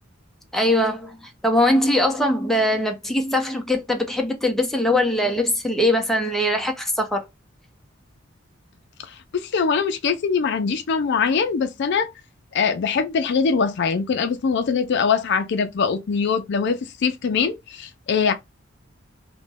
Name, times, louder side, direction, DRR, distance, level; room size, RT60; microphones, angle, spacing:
voice 1, 0.5-7.2, left 1 dB, ahead, 0.5 m, -21 dB
voice 2, 9.0-12.1 12.5-18.3, left 5 dB, 55° left, 0.4 m, -22 dB
3.0 x 2.2 x 3.3 m
head